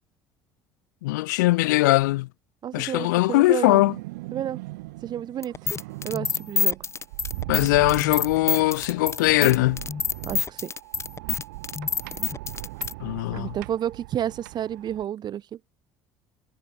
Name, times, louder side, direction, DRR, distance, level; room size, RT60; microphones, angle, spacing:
voice 1, 1.0-2.3 2.7-3.9 7.5-9.9 13.0-13.5, left 20 dB, 85° left, 1.2 m, -21 dB
voice 2, 2.6-3.8 4.3-4.6 5.0-5.5 6.0-6.8 10.3-10.7 13.3-15.6, right 10 dB, 50° right, 0.7 m, -30 dB
sound 1, 3.8-15.0, right 22 dB, 85° right, 6.8 m, -39 dB
sound 2, 5.4-12.9, left 5 dB, 30° left, 1.8 m, -27 dB
hypercardioid pair, 70°, 10 cm